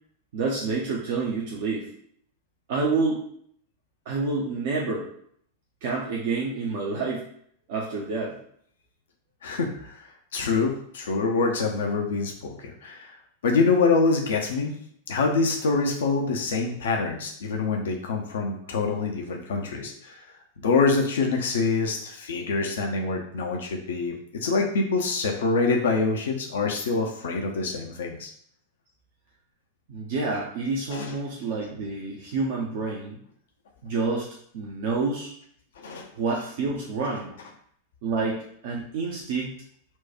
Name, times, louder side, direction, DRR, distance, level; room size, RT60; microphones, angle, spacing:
voice 1, 0.3-1.9 2.7-3.2 4.1-5.1 5.8-7.3 7.7-8.4 29.9-33.2 33.8-35.3 36.1-37.3 38.0-39.5, right 4 dB, 50° right, -3 dB, 0.7 m, -28 dB
voice 2, 9.4-13.1 13.4-14.7 15.1-20.2 20.6-28.3 30.9-31.1 35.8-36.1, left 4 dB, 60° left, 2 dB, 0.6 m, -25 dB
4.4 x 2.3 x 4.3 m, 0.65 s
figure-of-eight pair, 90°, 0 cm